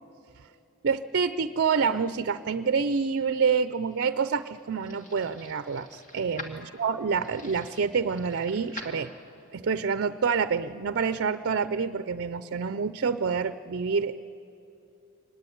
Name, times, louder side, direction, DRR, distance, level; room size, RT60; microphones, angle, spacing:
voice 1, 0.8-9.1 9.5-14.1, right 5 dB, 55° right, 13 dB, 0.5 m, -27 dB
sound 1, 3.6-9.5, left 2 dB, 35° left, 2.5 m, -46 dB
24.5 x 20.0 x 9.3 m, 2.9 s
head